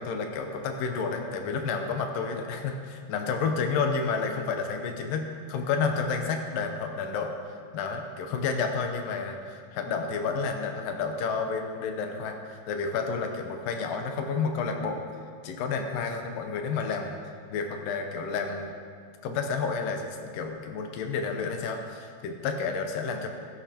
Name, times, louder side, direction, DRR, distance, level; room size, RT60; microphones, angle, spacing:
voice 1, 0.0-2.8 3.1-7.3 7.7-15.0 15.4-17.2 17.5-18.7 19.2-23.3, left 5 dB, 80° left, 4 dB, 2.4 m, -30 dB
13.0 x 11.0 x 2.9 m, 2.1 s
omnidirectional pair, 4.0 m